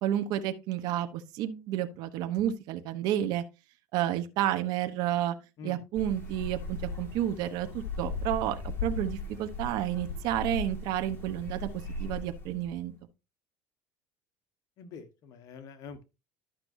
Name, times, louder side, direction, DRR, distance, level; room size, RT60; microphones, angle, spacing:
voice 1, 0.0-3.4 3.9-5.4 5.6-12.9, right 11 dB, 65° right, 1.0 m, -31 dB
sound 1, 5.9-12.8, left 2 dB, 30° left, 3.2 m, -38 dB
voice 2, 14.8-16.0, left 5 dB, 55° left, 1.2 m, -45 dB
12.0 x 6.0 x 2.6 m
supercardioid pair, 120°, 7 cm